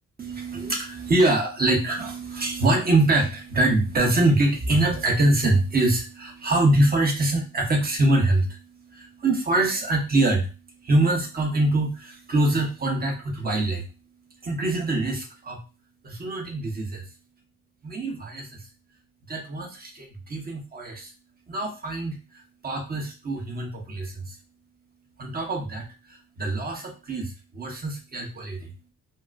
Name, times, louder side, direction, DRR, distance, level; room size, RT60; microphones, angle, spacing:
voice 1, 0.2-13.9 14.4-15.6 16.0-17.1 17.8-18.7 19.3-21.1 21.5-24.4 25.2-28.7, right 2 dB, 30° right, 1 dB, 1.1 m, -24 dB
4.0 x 2.1 x 2.5 m, 0.31 s
cardioid pair, 90°, 30 cm